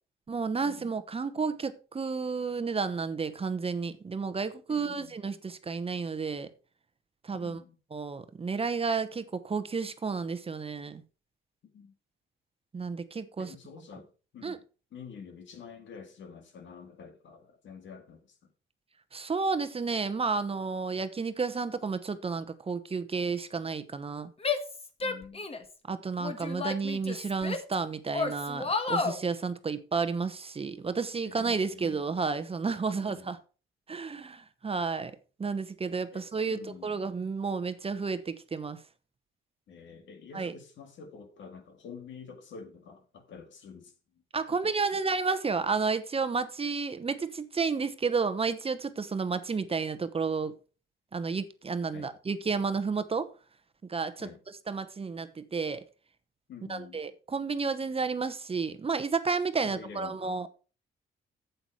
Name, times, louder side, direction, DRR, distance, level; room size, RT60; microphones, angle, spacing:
voice 1, 0.3-6.5 7.2-7.6 7.9-11.0 12.7-13.5 14.4-14.6 19.1-24.3 25.9-33.4 33.9-38.8 40.3-40.5 44.3-50.6 51.1-53.3 53.9-54.3 54.7-55.8 56.7-60.5, right 4 dB, 30° right, 0.9 m, -31 dB
voice 2, 4.7-5.2 7.3-7.8 11.7-11.9 13.4-14.6 14.9-18.4 25.0-25.5 31.2-32.0 32.9-33.3 36.1-37.0 39.7-43.9 44.5-45.0 51.9-52.1 54.2-54.4 56.5-57.0 59.6-60.3, left 6 dB, 70° left, 2.3 m, -48 dB
Female speech woman speaking / Yell, 24.4-25.7 26.2-27.7 28.1-29.2, left 4 dB, 30° left, 1.6 m, -31 dB
8.1 x 8.0 x 4.7 m
cardioid pair, 90°, 20 cm